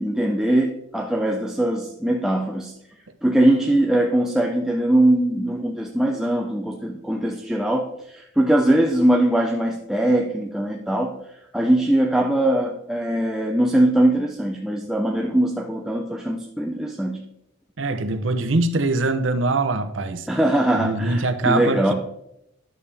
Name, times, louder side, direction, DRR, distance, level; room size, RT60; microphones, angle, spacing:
voice 1, 0.0-2.7 3.2-11.1 11.5-17.2 20.3-21.9, right 1 dB, ahead, 1 dB, 0.6 m, -21 dB
voice 2, 17.8-20.3 20.7-21.9, right 2 dB, 65° right, 8 dB, 0.8 m, -23 dB
11.0 x 6.9 x 3.4 m, 0.80 s
head